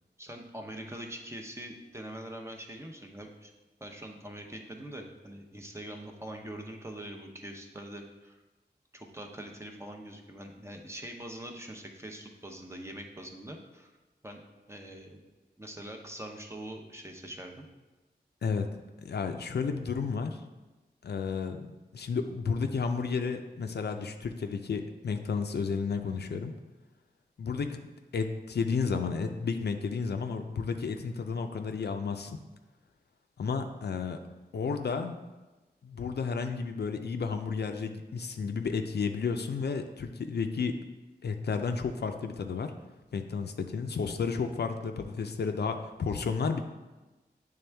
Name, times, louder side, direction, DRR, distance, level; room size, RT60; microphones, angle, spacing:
voice 1, 0.2-3.5 3.8-8.4 8.9-13.9 14.2-14.4 14.7-15.2 15.6-17.7, right 1 dB, 15° right, 2 dB, 0.7 m, -43 dB
voice 2, 19.0-20.4 21.0-21.7 21.9-26.5 27.4-32.4 33.4-34.2 34.5-35.2 35.8-40.7 41.2-42.7 43.1-46.6, left 5 dB, 75° left, 6 dB, 0.5 m, -32 dB
8.5 x 3.5 x 3.4 m, 1.1 s
wide cardioid pair, 100°, 17 cm